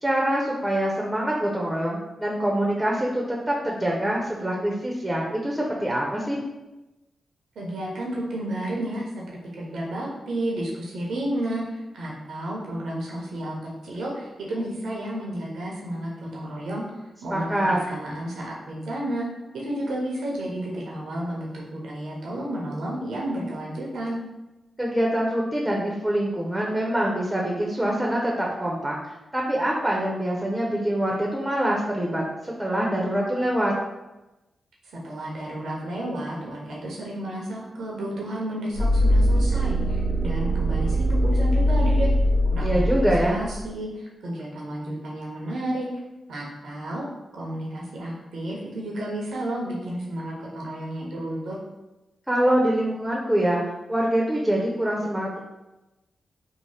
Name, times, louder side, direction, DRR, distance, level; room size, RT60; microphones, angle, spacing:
voice 1, 0.0-6.4 17.3-17.8 24.8-29.0 29.3-32.2 32.6-33.7 42.6-43.4 52.3-53.6 53.9-55.4, right 1 dB, 10° right, -3 dB, 0.6 m, -24 dB
voice 2, 7.6-16.8 17.2-19.3 19.5-24.2 34.9-42.1 42.5-45.9 46.3-47.0 47.3-51.6, right 1 dB, 80° right, -4 dB, 0.6 m, -32 dB
sound 1, 38.7-43.6, equal, 70° left, 0.9 m, -22 dB
2.7 x 2.0 x 3.2 m, 1.0 s
supercardioid pair, 45°, 0 cm